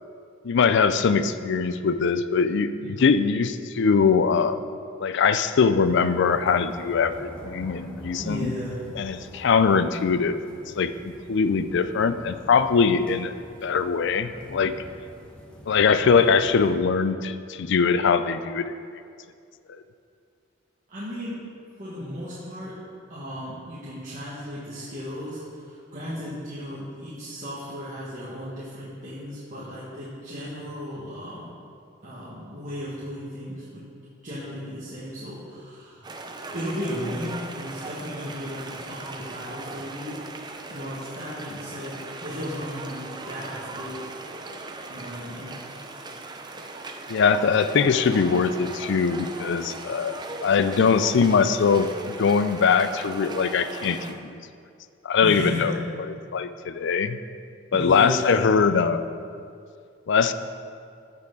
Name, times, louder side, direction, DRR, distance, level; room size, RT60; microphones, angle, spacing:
voice 1, 0.4-4.6 5.0-8.5 9.0-10.4 10.8-10.9 11.3-13.3 13.6-14.7 15.7-18.7 47.1-54.4 55.0-55.7 56.3-57.2 57.7-59.1 60.1-60.3, left 5 dB, 60° left, 12 dB, 0.4 m, -22 dB
sound 1, 5.8-16.7, equal, 5° left, 1.0 m, -45 dB
voice 2, 8.1-8.9 20.9-21.5 21.8-22.8 23.1-31.5 32.0-33.8 34.2-36.1 36.5-40.2 40.7-44.1 44.4-44.5 44.9-45.5 55.2-55.9 57.7-58.4, equal, 40° right, -10 dB, 1.7 m, -35 dB
sound 2, 36.0-54.1, right 3 dB, 20° right, 0.5 m, -38 dB
15.0 x 5.7 x 3.9 m, 2.3 s
head